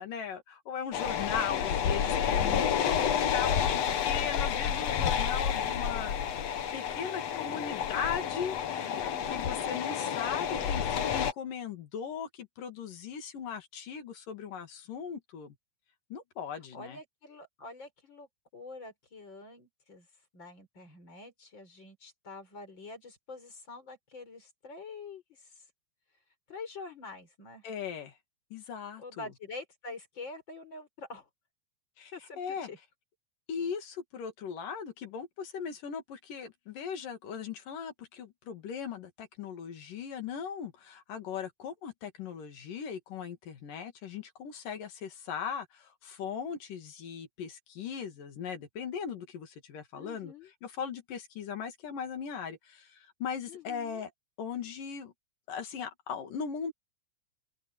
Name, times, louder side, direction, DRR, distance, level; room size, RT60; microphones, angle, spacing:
voice 1, 0.0-15.6 16.1-17.0 27.6-28.1 28.5-29.3 32.0-32.1 32.4-32.7 33.5-50.3 50.6-54.1 54.4-55.1 55.5-56.7, left 7 dB, 75° left, 4.0 m, -38 dB
sound 1, 0.9-11.3, left 8 dB, 55° left, 2.3 m, -30 dB
voice 2, 1.3-1.9 7.0-7.8 16.7-18.3 18.5-20.1 20.3-25.6 26.5-27.7 29.0-31.3 32.1-32.8 49.9-50.5 53.5-54.1, left 3 dB, 35° left, 5.6 m, -46 dB
open air
omnidirectional pair, 3.8 m